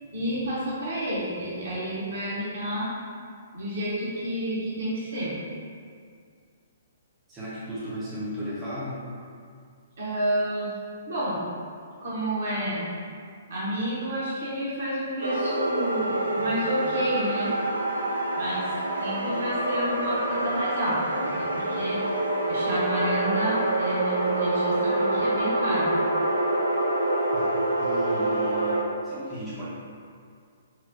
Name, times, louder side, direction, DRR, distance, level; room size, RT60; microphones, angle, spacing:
voice 1, 0.1-2.9 3.5-5.3 10.0-10.7 11.1-11.4 12.0-12.8 13.5-17.5 18.3-18.7 19.0-21.0 21.3-22.0 22.5-25.9, equal, 55° right, -7 dB, 1.0 m, -30 dB
voice 2, 7.3-9.1 27.3-29.7, equal, 15° right, -10 dB, 0.6 m, -36 dB
sound 1, 15.2-28.8, right 2 dB, 75° right, 0.3 m, -26 dB
4.3 x 2.0 x 2.7 m, 2.2 s
figure-of-eight pair, 120°, 0 cm